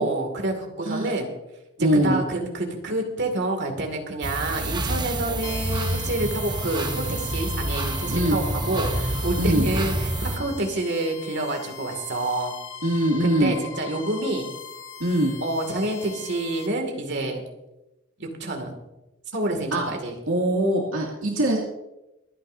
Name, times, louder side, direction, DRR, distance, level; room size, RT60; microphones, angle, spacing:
voice 1, 0.0-1.3 1.8-12.5 13.2-14.4 15.4-17.4 18.2-18.8 19.3-20.2, right 2 dB, 55° right, 3 dB, 2.4 m, -28 dB
voice 2, 1.8-2.2 8.1-8.4 9.4-9.7 12.8-13.6 15.0-15.4 19.7-19.8 20.3-21.6, right 1 dB, 85° right, -3 dB, 2.4 m, -22 dB
sound 1, 4.2-10.4, right 1 dB, 20° right, 1.0 m, -28 dB
sound 2, 5.4-16.7, left 7 dB, 70° left, 2.0 m, -40 dB
26.5 x 9.7 x 2.7 m, 0.95 s
head